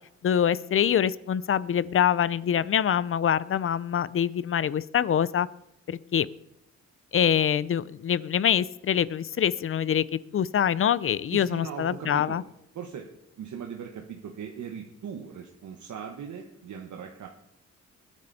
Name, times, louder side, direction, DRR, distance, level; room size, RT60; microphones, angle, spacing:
voice 1, 0.2-5.5 5.9-6.3 7.1-12.4, left 9 dB, 45° left, 19 dB, 0.5 m, -25 dB
voice 2, 11.3-12.4 12.7-13.1 13.4-17.3, right 7 dB, 70° right, 2 dB, 1.4 m, -39 dB
20.5 x 9.8 x 4.2 m, 0.81 s
cardioid pair, 120°, 30 cm